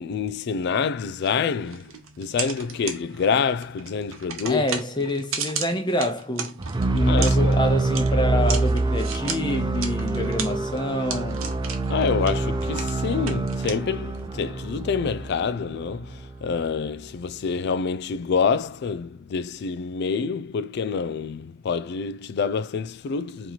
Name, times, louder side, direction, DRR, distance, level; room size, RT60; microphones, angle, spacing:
voice 1, 0.0-5.1 7.1-7.6 11.9-23.5, left 5 dB, 55° left, 0.3 m, -27 dB
sound 1, 1.2-14.3, right 6 dB, 85° right, 0.7 m, -36 dB
voice 2, 4.5-6.6 6.9-11.4, left 1 dB, 20° left, 0.7 m, -27 dB
sound 2, 6.6-16.6, right 2 dB, 20° right, 0.3 m, -25 dB
3.0 x 3.0 x 3.9 m
head